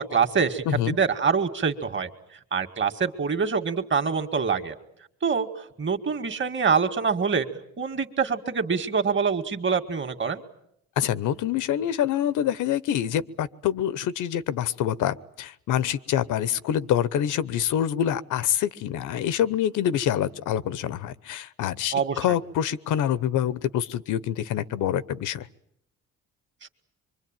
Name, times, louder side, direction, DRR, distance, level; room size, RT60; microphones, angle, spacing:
voice 1, 0.0-2.1 2.5-4.8 5.2-7.5 7.8-10.4 21.9-22.2 26.6-26.7, right 5 dB, 40° right, 7 dB, 2.2 m, -25 dB
voice 2, 0.7-1.0 11.0-25.5, left 10 dB, 80° left, 17 dB, 1.0 m, -26 dB
25.0 x 24.0 x 9.1 m, 0.75 s
cardioid pair, 90°, 30 cm